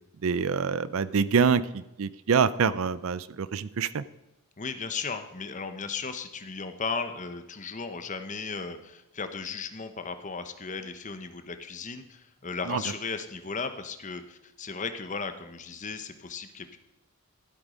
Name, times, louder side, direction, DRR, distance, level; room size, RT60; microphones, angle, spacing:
voice 1, 0.2-4.0 12.7-12.8, right 6 dB, 65° right, 17 dB, 0.5 m, -26 dB
voice 2, 4.6-16.8, left 4 dB, 35° left, 9 dB, 0.9 m, -36 dB
13.0 x 8.2 x 5.1 m, 0.91 s
head